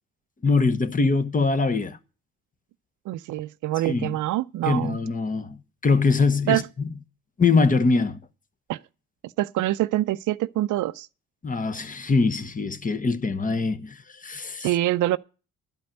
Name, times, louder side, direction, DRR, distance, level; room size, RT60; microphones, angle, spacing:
voice 1, 0.4-2.0 3.8-4.2 4.7-5.6 5.8-6.6 7.4-8.2 11.4-14.0 14.2-14.7, left 4 dB, 25° left, 1.1 m, -22 dB
voice 2, 3.1-5.0 6.5-6.6 8.7-8.8 9.4-11.1 14.6-15.2, right 15 dB, 80° right, 0.5 m, -25 dB
12.0 x 5.4 x 8.8 m
cardioid pair, 90°, 30 cm